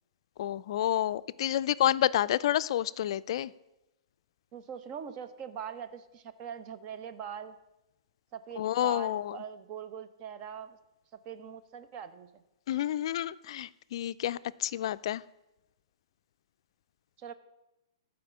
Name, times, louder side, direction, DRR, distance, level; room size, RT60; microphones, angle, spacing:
voice 1, 0.4-3.5 8.6-9.4 12.7-15.2, left 12 dB, 55° left, 16 dB, 0.4 m, -29 dB
voice 2, 4.5-7.6 8.3-10.8 11.2-12.3 17.2-17.3, right 8 dB, 35° right, 10 dB, 0.8 m, -42 dB
12.5 x 5.0 x 7.3 m, 0.97 s
hypercardioid pair, 130°, 3 cm